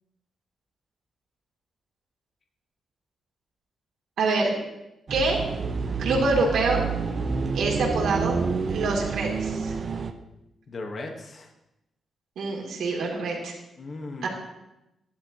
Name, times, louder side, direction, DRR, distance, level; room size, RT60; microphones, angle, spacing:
voice 1, 4.2-4.5 5.1-5.4 6.0-6.8 7.5-8.4 8.7-9.7 12.4-13.5 14.2-14.3, right 3 dB, 80° right, -1 dB, 2.7 m, -25 dB
sound 1, 5.1-10.1, right 5 dB, 40° right, 0.7 m, -28 dB
voice 2, 10.7-11.5 13.8-14.3, left 2 dB, 40° left, 2 dB, 1.3 m, -37 dB
16.0 x 11.5 x 2.9 m, 0.91 s
wide cardioid pair, 145°, 0 cm